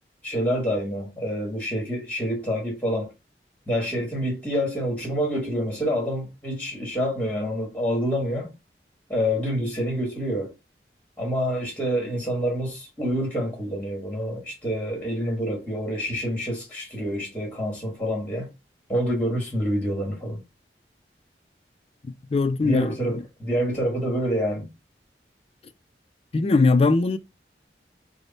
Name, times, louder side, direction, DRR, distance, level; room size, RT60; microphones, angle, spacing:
voice 1, 0.2-3.1 3.7-8.5 9.1-10.5 11.2-18.5 18.9-20.4 22.6-24.7, equal, 10° left, 1.4 m, -27 dB
voice 2, 22.0-22.9 26.3-27.2, left 3 dB, 35° left, 0.3 m, -20 dB
3.3 x 2.1 x 3.9 m
head